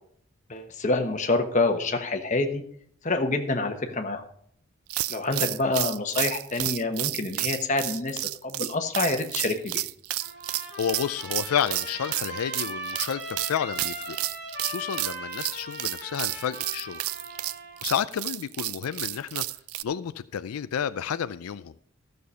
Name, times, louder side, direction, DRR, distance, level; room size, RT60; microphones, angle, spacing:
voice 1, 0.5-2.6 3.0-4.2 5.1-9.8, left 2 dB, 35° left, 1.1 m, -27 dB
sound 1, 4.9-19.8, right 17 dB, 80° right, 0.3 m, -31 dB
Trumpet, 10.2-17.8, right 1 dB, 50° right, 3.4 m, -39 dB
voice 2, 10.8-14.2 14.6-17.0 17.8-19.4 19.8-21.7, left 8 dB, 90° left, 0.4 m, -30 dB
14.0 x 6.7 x 5.5 m
head